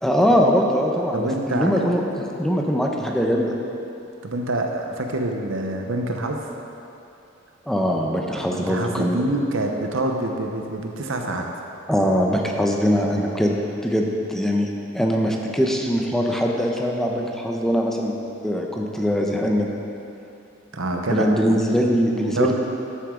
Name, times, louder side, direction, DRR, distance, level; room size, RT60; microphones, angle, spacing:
voice 1, 0.0-3.5 7.7-9.2 11.9-13.5 13.8-14.7 14.9-18.1 18.4-19.7 21.1-22.5, equal, ahead, 0 dB, 0.8 m, -22 dB
voice 2, 1.1-1.9 4.2-6.4 8.3-11.5 20.7-21.3 22.3-22.5, right 2 dB, 65° right, 3 dB, 0.9 m, -26 dB
13.0 x 8.3 x 3.8 m, 2.8 s
head